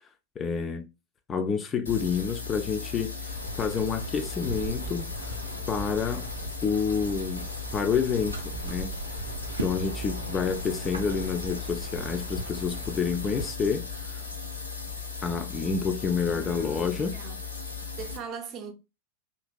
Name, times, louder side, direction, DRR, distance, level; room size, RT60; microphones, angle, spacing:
voice 1, 0.4-0.9 1.3-5.4 5.7-6.3 6.6-8.9 9.6-14.2 15.2-17.1, left 6 dB, 25° left, 0.3 m, -29 dB
sound 1, 1.9-18.2, left 5 dB, 80° left, 0.5 m, -37 dB
sound 2, 3.3-13.5, right 4 dB, 80° right, 0.5 m, -39 dB
voice 2, 16.3-17.4 17.9-18.7, right 6 dB, 35° right, 0.6 m, -41 dB
2.8 x 2.5 x 2.2 m
figure-of-eight pair, 90°, 0 cm